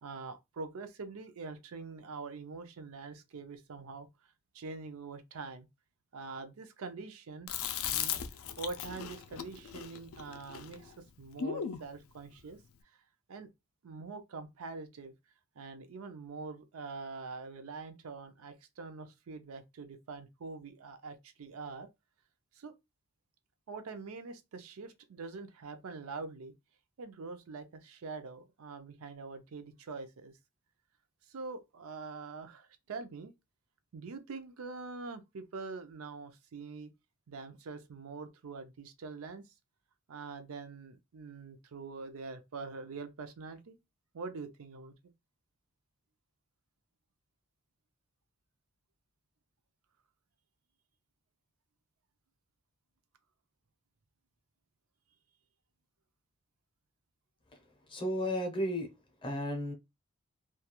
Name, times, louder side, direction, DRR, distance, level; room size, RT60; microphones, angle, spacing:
voice 1, 0.0-4.1 4.5-5.7 6.1-7.5 7.9-12.6 13.3-13.5 13.8-15.1 15.6-21.9 22.5-22.7 23.7-26.5 27.0-30.3 31.3-33.3 33.9-36.9 37.3-39.5 40.1-43.8 44.1-44.9, right 4 dB, 70° right, 0.5 m, -44 dB
Chewing mastication, 7.5-11.9, left 8 dB, 70° left, 0.3 m, -38 dB
voice 2, 57.5-58.9 59.2-59.7, equal, 20° left, 0.6 m, -34 dB
2.3 x 2.3 x 2.8 m
head